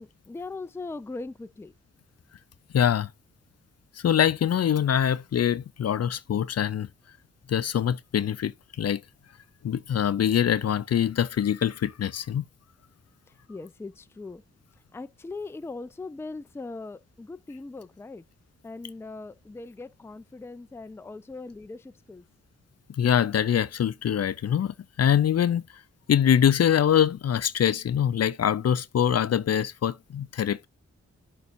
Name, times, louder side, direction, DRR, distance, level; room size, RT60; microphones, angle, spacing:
voice 1, 0.0-1.7 13.5-14.4 14.9-18.2 18.6-22.2, left 3 dB, 10° left, 0.4 m, -40 dB
voice 2, 2.7-3.1 4.0-6.9 7.5-9.0 9.6-12.4 23.0-25.6 26.1-30.7, left 9 dB, 60° left, 0.5 m, -24 dB
10.5 x 4.1 x 2.6 m
cardioid pair, 55°, 29 cm